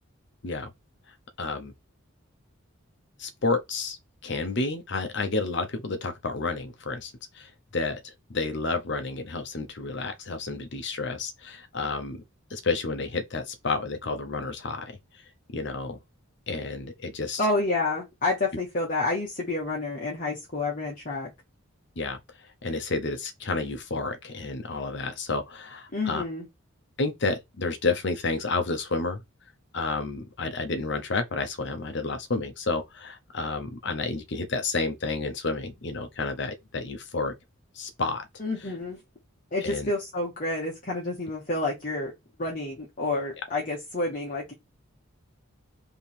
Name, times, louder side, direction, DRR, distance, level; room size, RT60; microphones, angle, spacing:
voice 1, 1.4-1.7 3.2-12.2 12.5-15.0 15.5-16.0 16.5-17.4 22.0-22.2 22.6-26.2 27.0-29.2 29.7-37.3 37.8-38.3 39.6-39.9, left 3 dB, 55° left, 0.8 m, -30 dB
voice 2, 17.4-21.3 25.9-26.5 38.4-39.0 39.5-42.1 42.4-44.5, left 2 dB, 40° left, 1.2 m, -29 dB
3.5 x 3.0 x 4.3 m
head